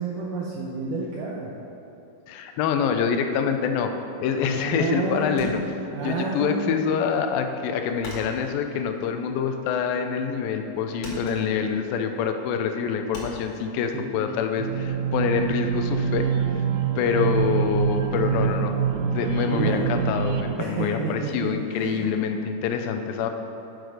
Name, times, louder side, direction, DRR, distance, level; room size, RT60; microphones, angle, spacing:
voice 1, 0.0-1.5 4.4-6.8 13.9-14.2 19.4-19.9 20.6-21.1 21.4-22.1, right 4 dB, 75° right, -4 dB, 2.1 m, -30 dB
voice 2, 2.3-3.9 4.2-5.6 6.0-16.3 17.0-18.7 19.1-23.3, left 7 dB, 80° left, 6 dB, 2.3 m, -26 dB
sound 1, 5.4-6.4 6.7-10.0 10.3-10.7 11.0-13.6, left 1 dB, 50° left, 2.6 m, -42 dB
sound 2, 14.6-20.6, right 8 dB, 90° right, 1.8 m, -25 dB
10.5 x 6.7 x 4.9 m, 3.0 s
omnidirectional pair, 4.3 m